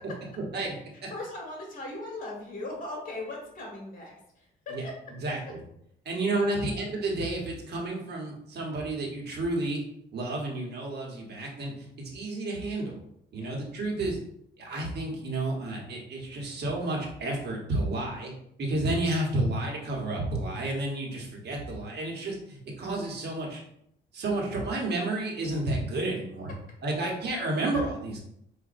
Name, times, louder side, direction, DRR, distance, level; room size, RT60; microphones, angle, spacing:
voice 1, 1.1-4.9 6.5-6.7 13.3-13.6, left 2 dB, 45° left, -1 dB, 1.4 m, -39 dB
voice 2, 5.2-5.6 6.0-9.8 10.1-13.0 13.3-14.2 14.6-18.3 18.6-23.6 24.1-26.5 26.8-28.2, right 2 dB, 55° right, -1 dB, 1.2 m, -31 dB
4.9 x 2.5 x 2.6 m, 0.74 s
cardioid pair, 90°, 20 cm